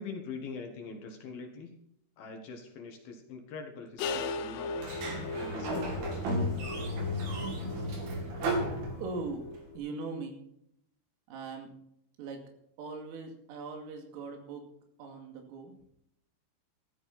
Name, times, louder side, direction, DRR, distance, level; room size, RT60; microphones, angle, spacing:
voice 1, 0.0-1.8 2.2-6.2, left 4 dB, 60° left, 3 dB, 3.0 m, -43 dB
sound 1, 4.0-9.8, left 3 dB, 85° left, 3.5 m, -39 dB
Sliding door, 4.8-9.5, equal, 55° right, 4.1 m, -34 dB
voice 2, 9.0-10.4 11.3-11.8 12.2-12.4 12.8-14.7 15.0-15.7, right 3 dB, 85° right, 4 dB, 4.9 m, -40 dB
14.0 x 14.0 x 4.3 m, 0.72 s
omnidirectional pair, 5.7 m